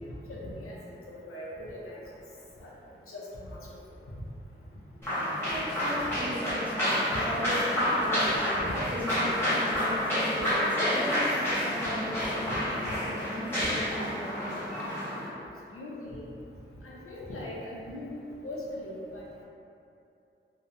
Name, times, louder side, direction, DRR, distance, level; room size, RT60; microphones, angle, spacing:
voice 1, 0.3-1.0 1.3-2.0 2.6-2.7 3.1-3.6 7.1-7.2 8.6-8.7 12.4-12.6 15.7-16.3 16.8-18.1 18.4-19.4, left 1 dB, 85° left, -6 dB, 0.6 m, -40 dB
sound 1, 5.0-15.3, equal, 10° left, 1.2 m, -29 dB
voice 2, 5.2-8.5 8.9-14.5, equal, 5° right, -8 dB, 0.5 m, -37 dB
2.8 x 2.1 x 2.5 m, 2.7 s
wide cardioid pair, 90°, 21 cm